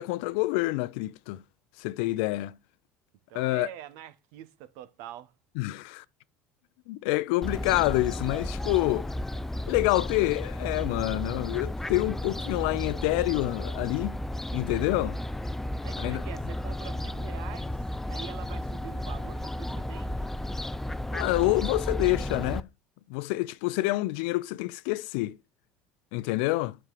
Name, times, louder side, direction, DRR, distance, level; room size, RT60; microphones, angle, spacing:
voice 1, 0.0-1.4 1.8-2.6 3.3-3.7 5.6-6.0 6.9-9.1 9.7-14.2 14.5-15.2 16.0-16.2 21.1-22.7 23.1-25.4 26.1-26.8, left 19 dB, 80° left, 0.5 m, -27 dB
voice 2, 3.3-5.3 15.8-20.3, right 11 dB, 75° right, 1.0 m, -45 dB
Fowl, 7.4-22.6, left 1 dB, 5° left, 0.4 m, -33 dB
7.7 x 6.3 x 6.7 m
supercardioid pair, 110°, 5 cm